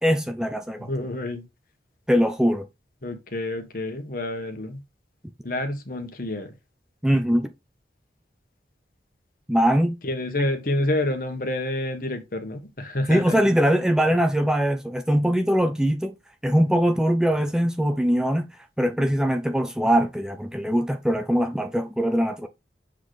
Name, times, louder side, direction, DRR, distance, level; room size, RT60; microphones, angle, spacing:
voice 1, 0.0-0.9 2.1-2.7 7.0-7.5 9.5-10.0 13.1-16.2 16.4-18.5 18.8-22.5, equal, 5° right, 0.5 m, -22 dB
voice 2, 0.9-1.4 3.0-4.8 5.4-6.5 10.0-13.4, left 1 dB, 50° left, 1.4 m, -28 dB
7.3 x 4.2 x 3.2 m
head